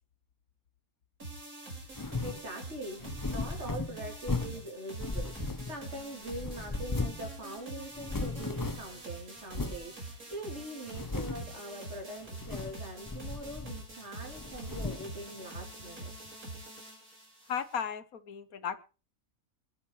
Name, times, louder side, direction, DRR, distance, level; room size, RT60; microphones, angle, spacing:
sound 1, 1.2-17.8, right 2 dB, 90° right, 5.8 m, -45 dB
sound 2, 1.9-2.5 3.0-4.6 5.0-6.0 6.3-7.3 7.6-7.7 7.9-9.0 9.5-9.9 10.3-10.4 10.9-11.5 12.3-12.8 13.1-13.9 14.3-15.1, left 3 dB, 20° left, 0.5 m, -36 dB
voice 1, 2.1-16.1, right 1 dB, 50° right, 2 dB, 3.7 m, -43 dB
voice 2, 17.5-18.8, left 7 dB, 80° left, 12 dB, 1.7 m, -35 dB
23.5 x 12.0 x 3.2 m, 0.33 s
omnidirectional pair, 1.5 m